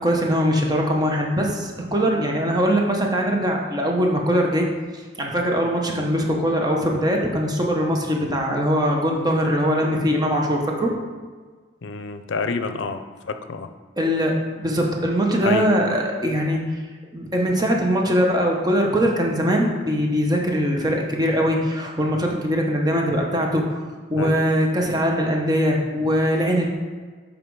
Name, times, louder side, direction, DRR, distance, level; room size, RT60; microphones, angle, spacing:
voice 1, 0.0-4.7 4.9-10.9 14.0-16.7 17.1-23.8 24.1-26.7, equal, 20° right, 0 dB, 0.9 m, -21 dB
voice 2, 11.8-13.0 13.3-13.7 15.4-15.7 24.1-24.4, left 4 dB, 75° left, 8 dB, 0.5 m, -28 dB
7.4 x 5.0 x 4.7 m, 1.5 s
head